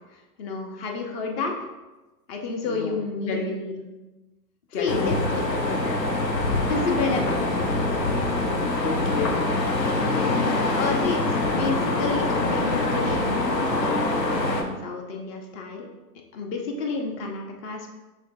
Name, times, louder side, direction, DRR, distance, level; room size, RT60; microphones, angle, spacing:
voice 1, 0.1-1.5 2.3-3.9 4.8-5.4 6.6-7.7 10.0-10.3 10.7-15.9 16.3-17.9, left 4 dB, 40° left, 3 dB, 0.8 m, -30 dB
voice 2, 2.6-3.5 4.7-6.0 8.8-9.4 10.9-11.0, left 4 dB, 20° left, 2 dB, 0.4 m, -32 dB
sound 1, 4.9-14.6, left 2 dB, 90° left, 0.7 m, -24 dB
6.3 x 3.2 x 2.5 m, 1.1 s
figure-of-eight pair, 105°, 48 cm